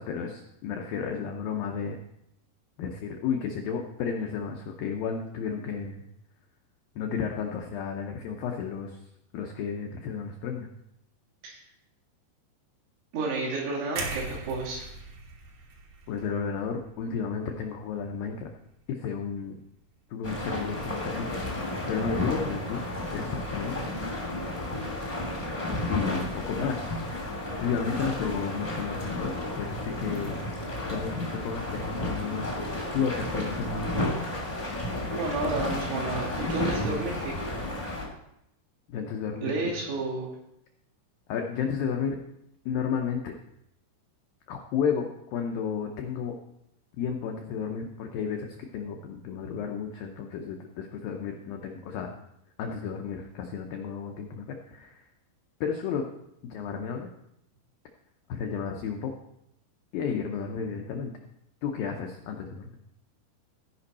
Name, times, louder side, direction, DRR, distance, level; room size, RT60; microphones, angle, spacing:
voice 1, 0.0-2.0 2.8-6.0 7.0-9.0 9.3-10.7 16.1-18.5 18.9-19.6 20.1-23.9 25.9-26.9 27.6-30.4 30.9-32.5 32.9-34.2 38.9-39.7 41.3-42.2 42.7-43.3 44.5-45.1 45.3-46.4 47.0-52.1 52.6-55.0 55.6-56.0 56.4-57.1 58.3-59.1 59.9-61.1 61.6-62.8, left 6 dB, 90° left, 2 dB, 2.0 m, -32 dB
voice 2, 13.1-14.9 35.1-37.4 39.4-40.3, right 3 dB, 90° right, -4 dB, 4.9 m, -31 dB
sound 1, 14.0-18.0 18.3-18.5, right 3 dB, 70° right, 1.8 m, -40 dB
sound 2, 20.2-38.0, left 1 dB, 40° left, 0.5 m, -32 dB
16.0 x 5.3 x 4.2 m, 0.80 s
omnidirectional pair, 5.1 m